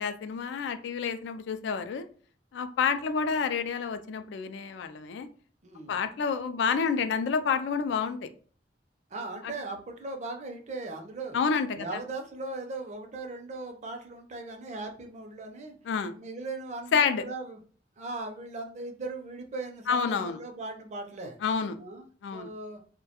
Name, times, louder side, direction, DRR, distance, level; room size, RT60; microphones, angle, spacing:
voice 1, 0.0-2.1 2.5-5.3 5.9-8.3 9.4-9.5 11.3-11.9 15.9-16.1 16.9-17.2 19.9-20.4 21.4-21.8 22.2-22.5, left 6 dB, 85° left, 9 dB, 0.3 m, -28 dB
voice 2, 5.6-6.0 9.1-11.4 11.8-15.8 16.1-17.6 18.0-21.4 21.8-22.8, right 2 dB, 40° right, 4 dB, 0.5 m, -38 dB
2.2 x 2.1 x 2.8 m, 0.44 s
head